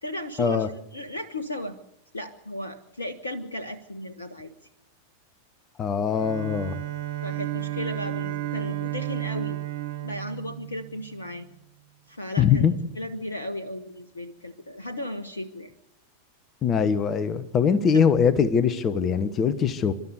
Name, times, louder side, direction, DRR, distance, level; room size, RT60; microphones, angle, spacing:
voice 1, 0.0-1.8 2.1-4.5 7.2-9.6 10.0-11.5 12.1-15.7 17.9-18.0, left 1 dB, 75° left, 10 dB, 1.2 m, -35 dB
voice 2, 5.8-6.8 12.4-12.7 16.6-19.9, left 7 dB, 25° left, 14 dB, 1.3 m, -22 dB
Bowed string instrument, 6.1-11.3, right 15 dB, 55° right, 2.0 m, -33 dB
30.0 x 13.0 x 8.2 m, 0.79 s
figure-of-eight pair, 90°, 0 cm